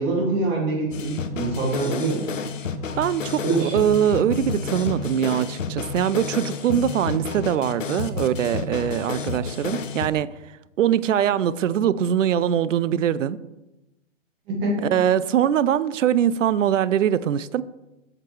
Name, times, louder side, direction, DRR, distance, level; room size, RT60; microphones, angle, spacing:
voice 1, 0.0-2.3 3.4-3.8 14.5-14.9, right 2 dB, 20° right, -2 dB, 1.7 m, -24 dB
sound 1, 0.9-10.1, left 6 dB, 75° left, 0.9 m, -30 dB
voice 2, 3.0-10.3 10.8-13.4 14.8-17.6, right 9 dB, 75° right, 17 dB, 0.5 m, -22 dB
8.5 x 6.7 x 3.2 m, 0.99 s
hypercardioid pair, 160°, 38 cm